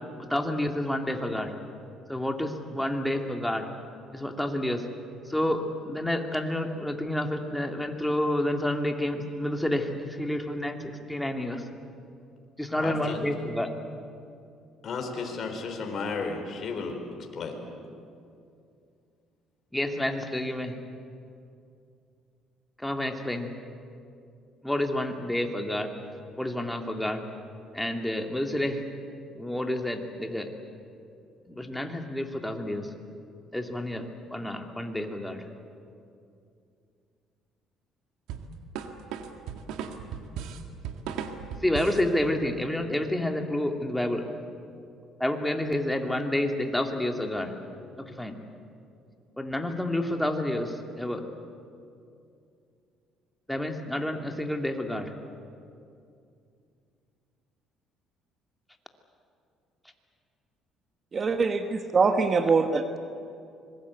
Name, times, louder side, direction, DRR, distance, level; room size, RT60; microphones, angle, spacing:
voice 1, 0.2-1.5 2.1-3.7 4.1-4.8 5.3-11.6 12.6-13.7 19.7-20.7 22.8-23.5 24.6-25.9 26.4-27.2 27.7-28.8 29.3-30.5 31.5-32.9 33.5-35.4 41.6-44.3 45.2-47.5 48.0-48.3 49.4-51.2 53.5-55.1, left 1 dB, 5° left, 4 dB, 2.4 m, -29 dB
voice 2, 12.8-13.3 14.8-17.0 17.3-17.6, left 4 dB, 45° left, 3 dB, 4.1 m, -33 dB
sound 1, 38.3-42.1, right 7 dB, 80° right, 1.9 m, -36 dB
voice 3, 61.1-62.8, right 4 dB, 35° right, 7 dB, 1.3 m, -23 dB
25.5 x 21.5 x 8.3 m, 2.5 s
cardioid pair, 110°, 0 cm